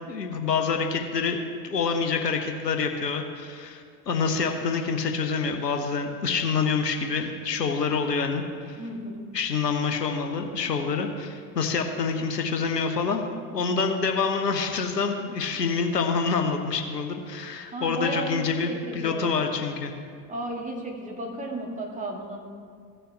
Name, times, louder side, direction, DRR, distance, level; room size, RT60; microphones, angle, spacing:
voice 1, 0.1-1.4 1.6-8.8 9.3-13.2 13.5-19.9, left 5 dB, 80° left, 5 dB, 1.1 m, -27 dB
voice 2, 8.8-9.3 17.7-19.3 20.3-22.4, right 1 dB, 15° right, -1 dB, 2.0 m, -34 dB
16.5 x 6.7 x 3.4 m, 2.1 s
figure-of-eight pair, 75°, 48 cm